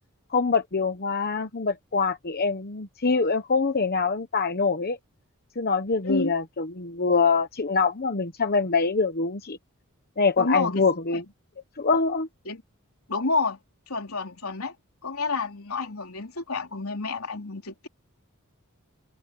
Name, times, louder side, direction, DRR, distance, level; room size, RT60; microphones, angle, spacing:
voice 1, 0.3-5.0 5.6-9.6 10.2-11.2 11.8-12.3, left 4 dB, 45° left, 1.0 m, -24 dB
voice 2, 10.4-10.8 12.4-12.6 13.1-13.6 13.9-14.7 15.0-17.9, left 3 dB, 80° left, 3.6 m, -29 dB
head